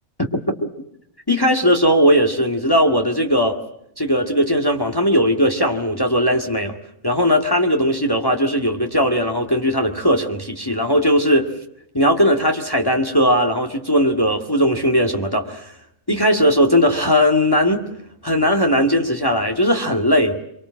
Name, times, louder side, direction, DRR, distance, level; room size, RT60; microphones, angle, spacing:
voice 1, 0.2-0.7 1.3-3.6 4.0-6.8 7.0-11.5 11.9-15.7 16.1-17.9 18.2-20.4, equal, 15° left, 3 dB, 2.0 m, -18 dB
25.5 x 24.5 x 7.5 m, 0.76 s
omnidirectional pair, 1.4 m